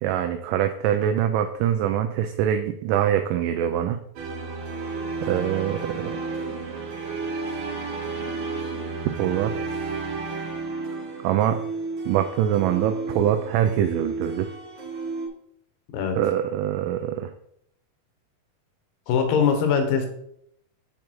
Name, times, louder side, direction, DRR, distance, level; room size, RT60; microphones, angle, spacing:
voice 1, 0.0-4.0 5.2-6.0 9.2-9.5 11.2-11.6 12.1-14.5 16.2-17.3, right 10 dB, 80° right, 7 dB, 2.0 m, -24 dB
sound 1, 4.2-15.3, right 4 dB, 65° right, 2.3 m, -32 dB
voice 2, 19.1-20.1, left 6 dB, 75° left, 5 dB, 2.8 m, -21 dB
7.6 x 5.2 x 4.4 m, 0.72 s
omnidirectional pair, 4.0 m